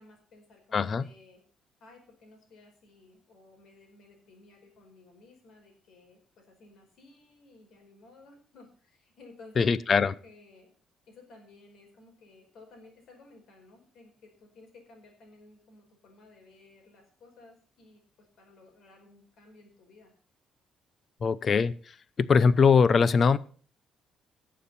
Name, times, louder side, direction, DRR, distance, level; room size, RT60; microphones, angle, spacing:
voice 1, 0.0-1.4 1.8-10.7 11.1-20.1, left 3 dB, 65° left, 3 dB, 5.1 m, -56 dB
voice 2, 0.7-1.0 9.6-10.1 21.2-21.7 22.2-23.4, left 5 dB, 40° left, 18 dB, 0.7 m, -21 dB
18.5 x 7.4 x 4.3 m, 0.41 s
cardioid pair, 115°, 0 cm